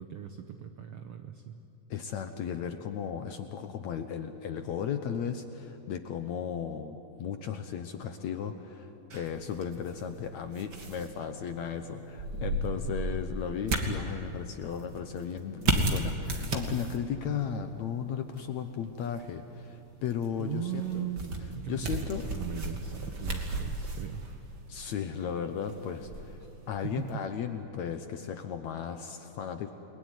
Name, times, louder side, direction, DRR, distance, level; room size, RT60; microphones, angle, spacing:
voice 1, 0.0-1.6 17.4-17.6 20.4-24.4 26.4-26.5 26.8-27.2, right 10 dB, 80° right, 7 dB, 1.3 m, -39 dB
voice 2, 1.9-21.1 21.7-22.3 24.7-26.4 26.7-29.7, left 8 dB, 65° left, 7 dB, 1.9 m, -35 dB
sound 1, 9.1-27.2, right 2 dB, 35° right, 2.2 m, -36 dB
29.5 x 21.0 x 9.7 m, 2.8 s
omnidirectional pair, 4.1 m